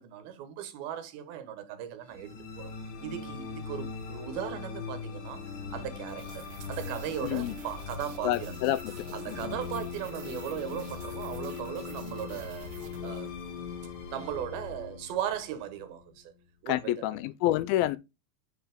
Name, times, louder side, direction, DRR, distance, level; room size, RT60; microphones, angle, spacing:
voice 1, 0.0-2.7 3.0-8.6 9.1-12.7 13.0-13.4 14.1-16.3 16.6-16.9, right 10 dB, 80° right, 3.0 m, -37 dB
sound 1, 2.1-16.4, left 6 dB, 60° left, 2.5 m, -40 dB
sound 2, 6.1-13.6, right 5 dB, 65° right, 2.1 m, -49 dB
voice 2, 7.2-7.6 8.2-8.9 9.3-9.6 16.7-18.0, left 14 dB, 85° left, 2.4 m, -28 dB
9.5 x 4.7 x 3.5 m
omnidirectional pair, 4.3 m